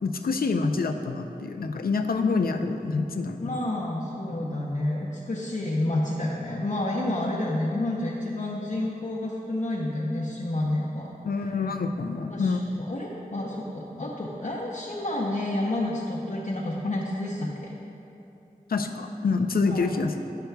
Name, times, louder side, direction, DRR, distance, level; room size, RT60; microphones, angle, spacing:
voice 1, 0.0-3.6 11.2-12.8 18.7-20.1, left 4 dB, 80° left, 6 dB, 0.4 m, -27 dB
voice 2, 3.4-11.1 11.5-11.6 12.3-12.6 12.9-17.7 19.7-19.9, left 1 dB, 55° left, -5 dB, 0.7 m, -29 dB
11.5 x 6.8 x 2.3 m, 2.9 s
wide cardioid pair, 70°, 15 cm